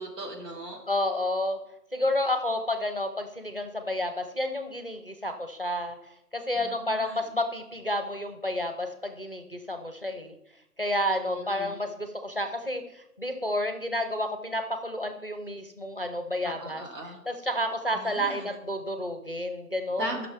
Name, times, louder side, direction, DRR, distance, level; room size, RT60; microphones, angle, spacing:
voice 1, 0.0-0.8 6.5-7.1 11.1-11.8 16.4-17.2 17.9-18.5 20.0-20.3, right 1 dB, 80° right, 0 dB, 3.0 m, -38 dB
voice 2, 0.9-1.6 1.9-10.4 10.8-16.8 17.3-20.2, left 1 dB, 35° left, 7 dB, 0.5 m, -30 dB
13.0 x 6.2 x 3.4 m, 0.84 s
hypercardioid pair, 180°, 48 cm